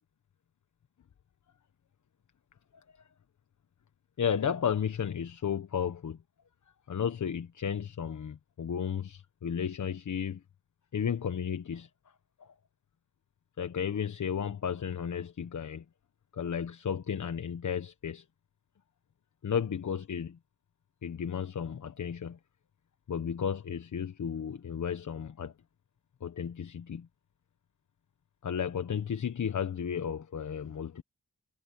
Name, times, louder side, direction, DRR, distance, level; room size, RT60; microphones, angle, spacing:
voice 1, 4.2-6.2 6.9-10.4 10.9-11.9 12.4-12.5 13.6-15.8 16.3-18.2 19.4-20.4 21.0-22.4 23.1-25.5 26.2-27.1 28.4-31.0, left 7 dB, 70° left, 1.4 m, -33 dB
cardioid pair, 50°, 31 cm